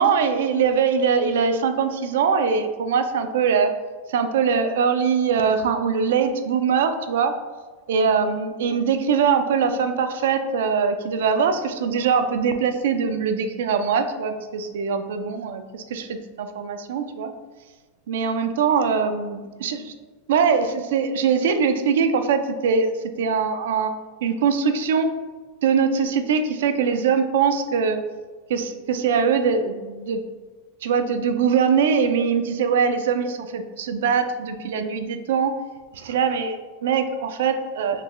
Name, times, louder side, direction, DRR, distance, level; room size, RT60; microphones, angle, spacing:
voice 1, 0.0-3.7 4.1-7.3 7.9-17.3 18.1-19.9 20.3-22.9 23.2-23.9 24.2-25.1 25.6-28.0 28.5-30.2 30.8-35.5 35.9-38.0, right 6 dB, 80° right, 8 dB, 0.3 m, -22 dB
3.7 x 2.2 x 3.0 m, 1.4 s
supercardioid pair, 145°, 0 cm